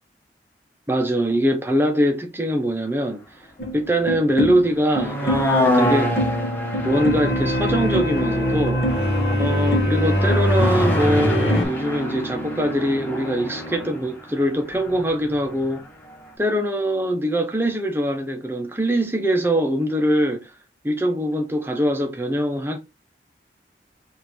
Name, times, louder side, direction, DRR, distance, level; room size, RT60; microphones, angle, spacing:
voice 1, 0.9-3.2 3.7-6.1 6.8-8.8 9.4-15.8 16.4-20.5 20.8-22.8, equal, 15° right, 0.6 m, -22 dB
sound 1, 3.6-11.6, equal, 60° left, 1.2 m, -22 dB
sound 2, 4.7-15.8 16.1-16.2, left 1 dB, 10° left, 1.0 m, -27 dB
3.8 x 2.6 x 4.3 m
head